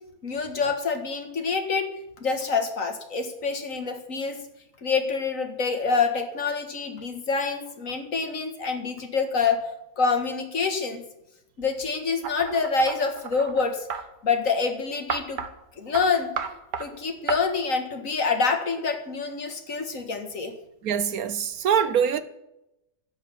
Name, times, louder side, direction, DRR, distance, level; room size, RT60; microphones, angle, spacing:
voice 1, 0.2-1.9 2.2-4.4 4.8-9.6 10.0-11.0 11.6-13.9 14.2-15.4 15.8-16.3 16.8-20.5, left 4 dB, 55° left, 2.0 m, -26 dB
sound 1, 12.2-14.0 15.1-15.5 15.9-16.1 16.4-16.9 17.3-17.4, right 6 dB, 85° right, 1.8 m, -32 dB
voice 2, 20.8-22.2, right 8 dB, 65° right, 1.2 m, -23 dB
11.0 x 7.8 x 10.0 m
omnidirectional pair, 1.8 m